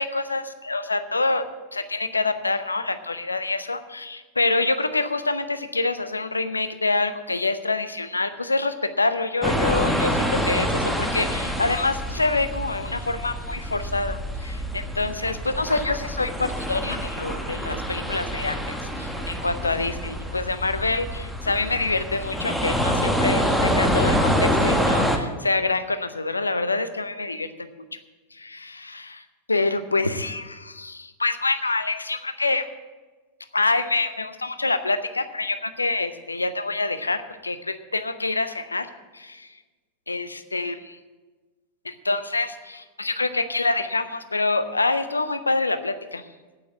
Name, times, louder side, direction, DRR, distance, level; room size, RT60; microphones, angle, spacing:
voice 1, 0.0-1.4 1.7-28.0 28.3-29.2 29.5-32.7 33.5-38.9 39.1-39.5 40.1-40.7 41.8-46.2, left 3 dB, 80° left, 11 dB, 0.7 m, -26 dB
sound 1, 9.4-25.2, equal, ahead, 1.3 m, -26 dB
8.8 x 8.6 x 9.1 m, 1.3 s
figure-of-eight pair, 90°, 0 cm